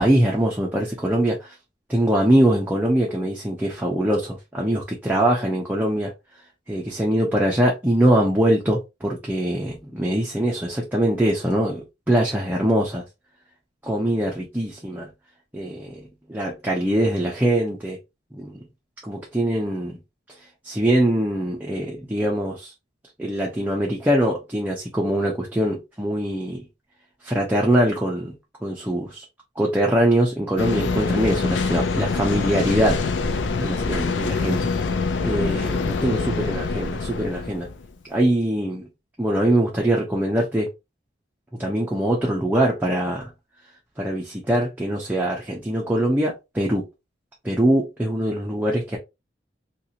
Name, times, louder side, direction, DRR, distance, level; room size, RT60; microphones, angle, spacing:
voice 1, 0.0-1.5 1.9-6.1 6.7-13.0 13.8-15.1 15.5-18.0 18.3-18.6 19.0-20.0 20.6-22.7 23.2-26.6 27.2-28.3 28.6-29.2 29.6-33.0 33.6-34.7 35.2-37.7 38.1-38.9 39.2-40.7 41.6-43.3 44.0-46.8 47.4-49.0, right 1 dB, 10° right, 0.6 m, -22 dB
sound 1, 30.6-37.9, left 4 dB, 85° left, 0.5 m, -25 dB
2.9 x 2.6 x 2.8 m
head